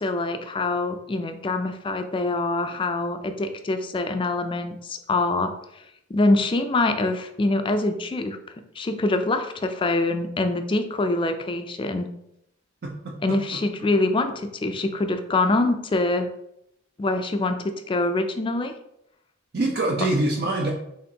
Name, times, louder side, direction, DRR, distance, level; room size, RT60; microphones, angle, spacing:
voice 1, 0.0-5.5 6.1-8.4 8.8-12.1 13.2-16.3 17.0-18.7, left 2 dB, 25° left, 7 dB, 0.4 m, -24 dB
voice 2, 12.8-13.4 19.5-20.7, right 2 dB, 50° right, 0 dB, 0.5 m, -25 dB
4.3 x 3.6 x 2.7 m, 0.79 s
head